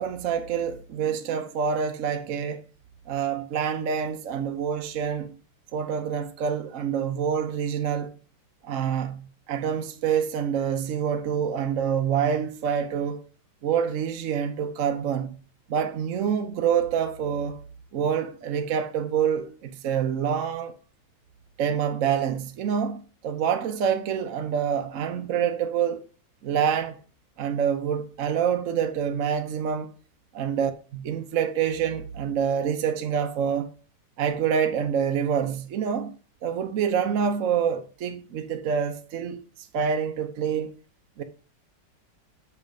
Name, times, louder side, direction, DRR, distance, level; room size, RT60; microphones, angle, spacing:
voice 1, 0.0-2.6 3.1-5.3 5.7-8.1 8.6-13.2 13.6-15.4 15.7-17.6 17.9-20.7 21.6-26.0 26.4-27.0 27.4-29.9 30.3-33.7 34.2-36.1 36.4-39.4 39.7-40.7 41.2-41.3, right 7 dB, 55° right, 1.0 m, -26 dB
6.5 x 5.5 x 5.1 m
omnidirectional pair, 2.0 m